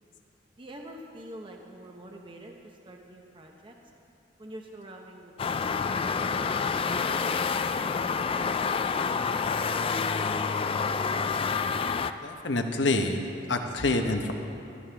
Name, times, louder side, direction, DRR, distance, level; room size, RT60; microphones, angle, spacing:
voice 1, 0.6-3.7 4.4-5.3 5.6-6.5, right 1 dB, 25° right, 1 dB, 0.9 m, -46 dB
sound 1, 5.4-12.1, left 5 dB, 30° left, 0.3 m, -28 dB
voice 2, 12.2-14.3, left 2 dB, 70° left, 5 dB, 1.0 m, -27 dB
16.5 x 13.0 x 3.5 m, 2.8 s
head